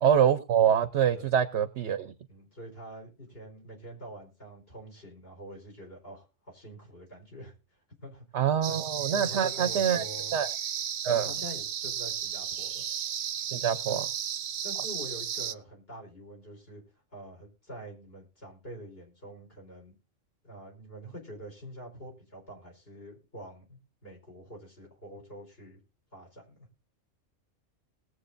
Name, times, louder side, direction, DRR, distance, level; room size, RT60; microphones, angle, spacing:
voice 1, 0.0-2.1 8.3-10.0 10.3-10.5 11.0-11.3 13.5-14.1, right 8 dB, 60° right, 11 dB, 1.0 m, -25 dB
voice 2, 2.3-8.4 8.7-8.8 9.1-10.4 11.1-12.8 13.9-14.0 14.6-16.8 17.1-19.9 20.4-25.8 26.1-26.7, right 1 dB, 50° left, 0 dB, 4.5 m, -45 dB
sound 1, 8.6-15.5, right 9 dB, 85° right, 1.1 m, -34 dB
20.0 x 7.9 x 2.6 m, 0.31 s
omnidirectional pair, 1.3 m